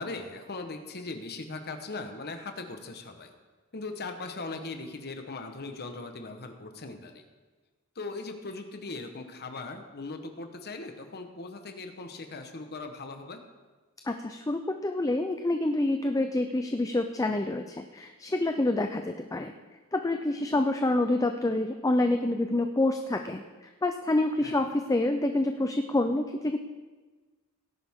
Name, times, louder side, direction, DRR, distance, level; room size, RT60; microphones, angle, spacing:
voice 1, 0.0-3.3 3.7-7.3 7.9-13.4 24.4-24.6, left 3 dB, 45° left, 6 dB, 1.2 m, -39 dB
voice 2, 14.1-19.5 19.9-23.4 23.8-26.6, left 2 dB, 15° left, 6 dB, 0.5 m, -27 dB
17.5 x 10.5 x 3.7 m, 1.3 s
head